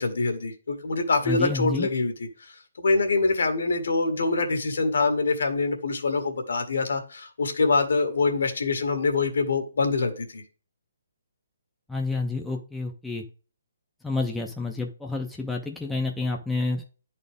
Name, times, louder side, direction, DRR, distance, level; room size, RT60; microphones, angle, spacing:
voice 1, 0.0-2.1 2.4-10.4, left 3 dB, 70° left, 5 dB, 1.7 m, -25 dB
voice 2, 1.3-1.9 11.9-13.2 14.0-16.8, left 3 dB, ahead, 0 dB, 0.5 m, -29 dB
10.5 x 4.2 x 3.4 m, 0.37 s
hypercardioid pair, 175°, 0 cm